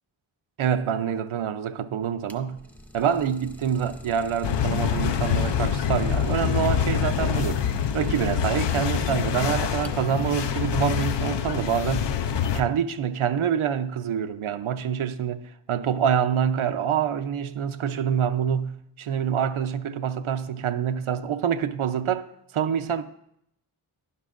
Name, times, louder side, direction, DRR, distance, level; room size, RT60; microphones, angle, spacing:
voice 1, 0.6-2.7 2.9-7.7 7.9-12.2 12.5-22.3 22.5-23.0, right 8 dB, 85° right, 0.7 m, -26 dB
Idling, 2.0-10.3, equal, 5° left, 0.6 m, -44 dB
sound 1, 4.4-12.6, left 8 dB, 60° left, 0.5 m, -25 dB
11.0 x 10.5 x 2.5 m
wide cardioid pair, 110°, 48 cm